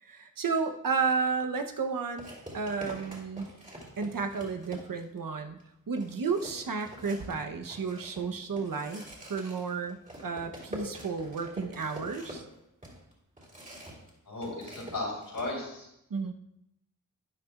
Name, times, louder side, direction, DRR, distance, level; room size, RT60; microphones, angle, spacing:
voice 1, 0.0-3.5 4.0-5.6 5.9-12.4 16.1-16.3, right 5 dB, 80° right, 6 dB, 0.9 m, -32 dB
sound 1, 1.2-1.4 2.2-5.2 5.6-5.7 6.0-14.1 14.4-15.5, equal, 25° right, 3.2 m, -45 dB
voice 2, 14.3-15.9, left 2 dB, 80° left, -4 dB, 4.4 m, -35 dB
12.5 x 9.8 x 2.4 m, 0.80 s
wide cardioid pair, 90°, 33 cm